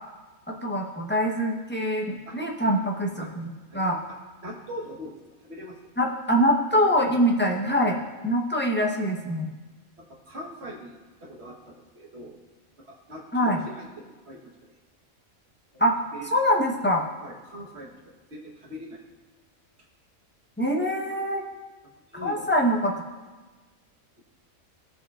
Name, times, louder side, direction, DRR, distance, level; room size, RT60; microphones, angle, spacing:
voice 1, 0.5-4.0 6.0-9.5 13.3-13.6 15.8-16.0 16.2-17.0 20.6-21.4 22.2-22.9, equal, 10° left, -1 dB, 0.7 m, -24 dB
voice 2, 2.3-2.7 3.2-3.3 3.7-3.8 4.4-5.2 5.5-5.8 10.1-10.9 11.2-12.3 12.8-14.4 15.7-15.8 16.1-16.3 17.2-17.9 18.3-19.0 22.1-22.5, equal, 50° right, -1 dB, 1.5 m, -41 dB
16.5 x 5.7 x 2.4 m, 1.3 s
omnidirectional pair, 1.4 m